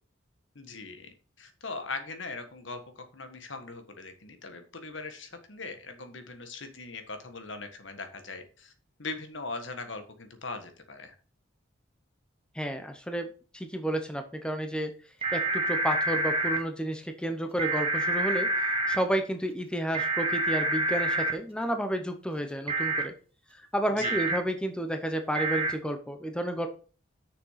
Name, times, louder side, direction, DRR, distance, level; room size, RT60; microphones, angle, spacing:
voice 1, 0.5-8.7 9.0-11.1 24.0-24.2, left 3 dB, 70° left, 7 dB, 1.6 m, -40 dB
voice 2, 12.5-13.3 13.5-14.9 15.3-18.5 18.9-23.1 23.5-26.7, right 1 dB, 5° left, 6 dB, 0.8 m, -31 dB
sound 1, 15.2-16.6 17.6-19.0 19.9-21.3 22.7-23.0 24.0-24.4 25.3-25.7, right 2 dB, 30° right, 1.5 m, -27 dB
6.6 x 6.6 x 5.6 m, 0.40 s
head